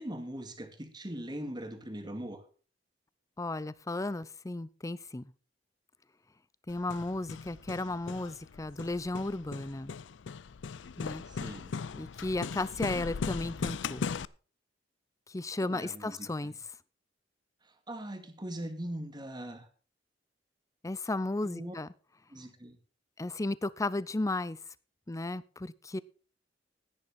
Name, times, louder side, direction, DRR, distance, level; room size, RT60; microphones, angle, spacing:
voice 1, 0.0-2.4 11.3-11.7 15.6-16.6 17.9-19.7 21.4-21.7 22.3-22.8, right 1 dB, 25° right, 2.2 m, -41 dB
voice 2, 3.4-5.2 6.7-10.0 11.0-11.2 11.9-14.1 15.3-16.5 20.8-21.9 23.2-24.6 25.1-26.0, left 2 dB, 20° left, 0.5 m, -34 dB
Hammer, 6.7-14.3, left 5 dB, 80° left, 0.5 m, -39 dB
15.5 x 9.8 x 4.2 m
head